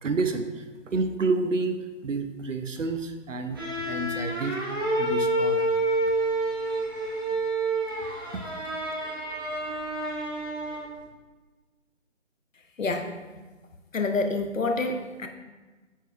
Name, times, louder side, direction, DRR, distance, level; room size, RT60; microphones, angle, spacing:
voice 1, 0.0-1.8 2.0-4.6 5.0-5.7 8.3-8.4, right 3 dB, 75° right, 7 dB, 0.9 m, -29 dB
sound 1, 3.5-11.0, right 1 dB, 20° right, 0.8 m, -28 dB
voice 2, 12.8-13.2 13.9-15.3, left 3 dB, 85° left, 6 dB, 1.0 m, -27 dB
8.4 x 5.7 x 2.5 m, 1.3 s
figure-of-eight pair, 155°, 38 cm